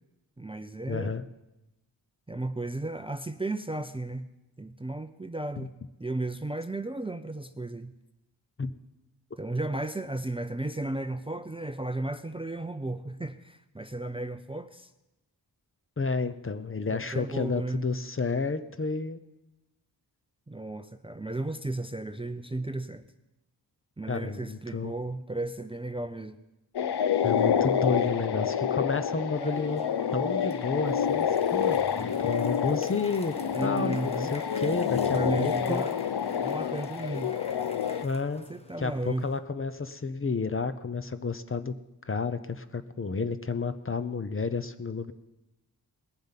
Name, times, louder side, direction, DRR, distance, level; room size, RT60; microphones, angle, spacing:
voice 1, 0.4-1.1 2.3-4.3 4.6-5.7 6.0-7.9 9.4-14.9 16.9-17.8 20.5-23.0 24.0-26.4 33.5-34.3 35.1-36.0 36.4-37.3 38.5-39.3, right 2 dB, 15° right, 10 dB, 0.5 m, -34 dB
voice 2, 0.9-1.2 5.6-5.7 8.6-8.7 16.0-19.2 24.1-24.9 27.2-29.8 30.1-33.3 33.6-35.8 38.0-38.4 38.8-41.7 42.1-45.1, left 4 dB, 30° left, 11 dB, 0.7 m, -31 dB
sound 1, 26.8-38.0, left 8 dB, 70° left, 0.7 m, -28 dB
sound 2, 29.3-39.4, left 1 dB, 15° left, 1.1 m, -49 dB
19.5 x 7.3 x 5.7 m, 0.97 s
wide cardioid pair, 80°, 40 cm